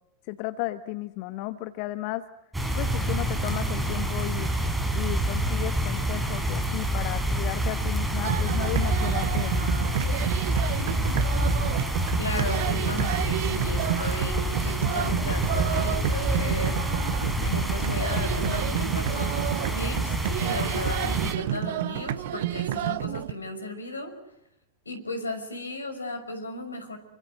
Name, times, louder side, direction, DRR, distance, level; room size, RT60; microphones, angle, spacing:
voice 1, 0.2-2.3 2.7-4.5 4.9-9.5, left 17 dB, 45° left, 12 dB, 1.1 m, -34 dB
sound 1, 2.5-21.3, right 1 dB, 5° right, 5.3 m, -27 dB
sound 2, 8.2-23.3, right 13 dB, 55° right, 1.0 m, -30 dB
voice 2, 12.2-16.8 17.4-24.1 24.9-27.0, left 2 dB, 75° left, 8 dB, 5.7 m, -35 dB
28.5 x 25.0 x 8.0 m, 0.80 s
figure-of-eight pair, 90°, 0 cm